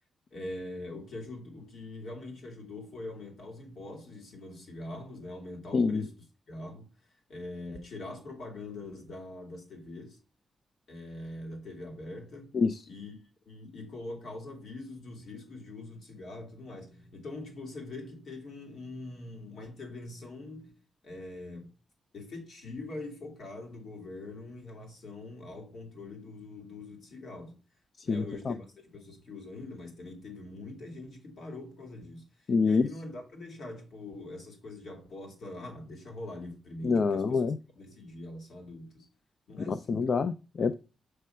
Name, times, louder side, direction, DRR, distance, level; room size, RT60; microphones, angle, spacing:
voice 1, 0.3-6.1 6.5-6.9 7.3-10.2 10.9-12.5 12.9-13.2 13.5-20.7 21.0-21.7 22.1-27.6 28.0-32.3 32.6-37.4 37.8-39.1 39.5-40.1, left 2 dB, 65° left, 2.2 m, -43 dB
voice 2, 5.7-6.1 12.5-12.8 28.0-28.5 32.5-32.9 36.8-37.6 39.7-40.7, left 4 dB, 45° left, 0.4 m, -26 dB
7.4 x 3.3 x 5.5 m
wide cardioid pair, 150°, 0 cm